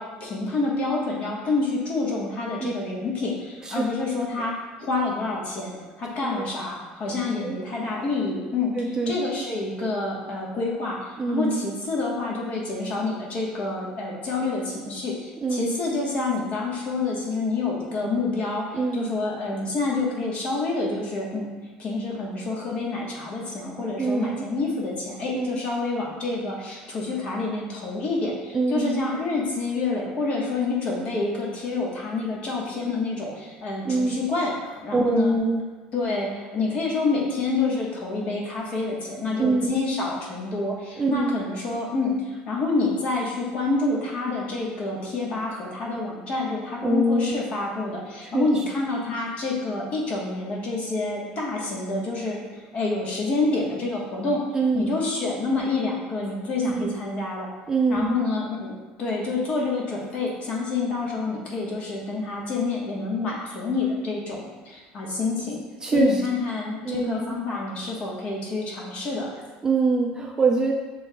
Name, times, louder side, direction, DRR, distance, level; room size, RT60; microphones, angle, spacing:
voice 1, 0.0-8.7 9.1-21.5 21.8-35.3 35.9-54.4 54.7-57.5 57.9-58.7 59.0-65.6 65.9-69.3, left 3 dB, 40° left, -3 dB, 1.2 m, -28 dB
voice 2, 8.8-9.1 11.2-11.7 15.4-15.8 18.7-19.1 24.0-24.5 25.3-25.6 28.5-29.1 33.8-34.3 34.9-35.6 39.4-39.8 41.0-41.4 46.8-47.4 48.2-48.6 54.5-55.0 56.6-57.0 57.7-58.2 65.8-66.2 66.8-67.3 69.6-70.7, right 3 dB, 20° right, 0 dB, 0.4 m, -24 dB
6.8 x 3.1 x 2.3 m, 1.3 s
cardioid pair, 130°, 3 cm